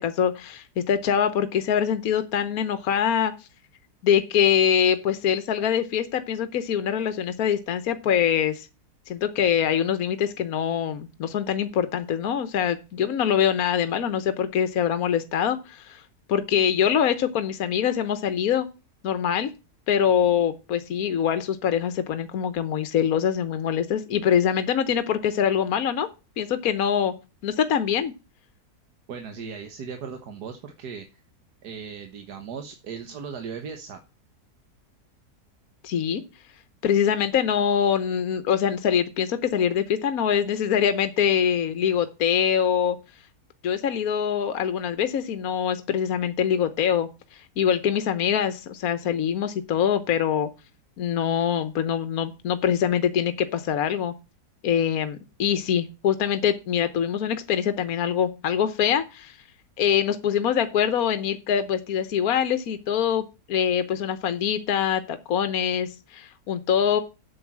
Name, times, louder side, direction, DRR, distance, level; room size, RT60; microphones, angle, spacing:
voice 1, 0.0-3.3 4.0-8.7 9.1-16.0 16.3-18.7 19.0-19.5 19.9-26.1 26.4-27.1 27.4-28.1 35.8-36.2 36.8-43.0 43.6-50.5 51.0-54.1 54.6-59.4 59.8-63.2 63.5-67.0, left 8 dB, 70° left, 11 dB, 1.4 m, -24 dB
voice 2, 29.1-31.2 31.6-34.0, right 6 dB, 90° right, 6 dB, 1.8 m, -37 dB
8.1 x 7.1 x 7.4 m, 0.29 s
omnidirectional pair, 1.7 m